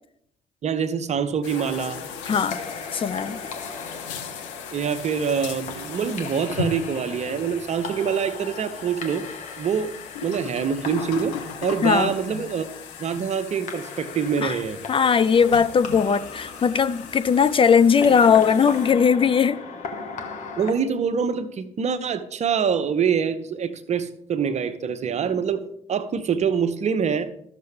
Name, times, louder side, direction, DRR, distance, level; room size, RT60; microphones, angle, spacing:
voice 1, 0.6-2.0 4.7-9.3 9.6-9.9 10.2-11.4 11.6-14.8 20.6-25.6 25.9-27.3, right 7 dB, 45° right, 0.8 m, -25 dB
sound 1, 1.4-18.9, left 7 dB, 80° left, 0.7 m, -38 dB
sound 2, 1.5-20.7, left 4 dB, 50° left, 1.4 m, -38 dB
voice 2, 2.2-2.6 2.9-3.4 11.8-12.1 14.4-14.6 14.9-19.6, left 6 dB, 35° left, 0.5 m, -19 dB
13.0 x 6.6 x 3.5 m
hypercardioid pair, 45°, 16 cm